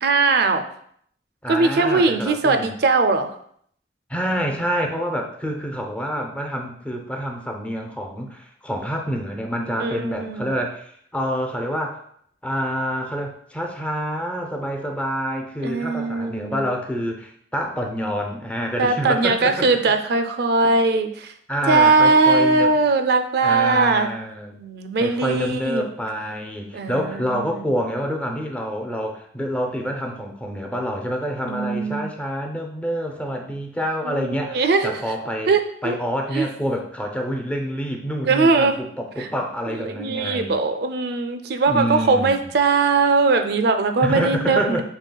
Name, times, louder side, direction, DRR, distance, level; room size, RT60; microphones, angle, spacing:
voice 1, 0.0-0.6 1.5-3.3 9.8-10.6 15.6-16.6 18.8-21.3 21.7-24.1 24.5-25.8 26.7-27.7 31.5-32.1 34.0-34.9 35.5-36.0 36.3-36.5 38.2-38.8 39.2-39.3 39.7-44.8, right 3 dB, 60° right, 7 dB, 0.4 m, -20 dB
voice 2, 1.4-2.7 4.1-12.0 12.4-19.8 20.6-20.7 21.5-22.8 23.4-24.5 25.0-35.5 35.8-40.6 41.7-42.4 44.0-44.8, equal, 5° left, 2 dB, 0.5 m, -27 dB
5.4 x 3.1 x 2.2 m, 0.66 s
head